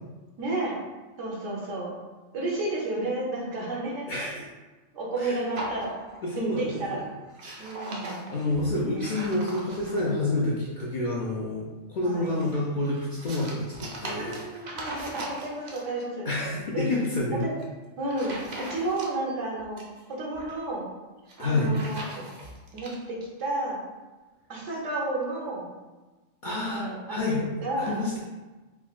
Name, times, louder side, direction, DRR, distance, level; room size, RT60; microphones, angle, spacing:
voice 1, 0.4-0.8 1.2-1.9 2.3-4.3 4.9-6.0 6.4-7.0 7.6-8.4 8.8-9.2 12.0-12.4 14.2-16.3 16.7-17.0 17.4-17.5 18.0-19.8 20.1-20.9 21.4-22.2 22.7-23.8 24.5-25.7 26.4-28.0, right 2 dB, 90° right, -3 dB, 1.1 m, -32 dB
voice 2, 4.1-4.4 5.2-5.4 6.2-7.0 7.4-7.7 8.3-14.4 16.2-17.5 21.4-21.7 26.4-27.4 27.8-28.2, left 2 dB, 60° left, -5 dB, 0.5 m, -28 dB
sound 1, 5.5-6.4 6.7-7.0 7.3-10.2 12.0-16.0 17.4-17.6 18.1-19.3 19.6-20.6 21.2-23.0, right 1 dB, 55° right, 0.5 m, -40 dB
3.7 x 2.1 x 2.3 m, 1.2 s
omnidirectional pair, 1.2 m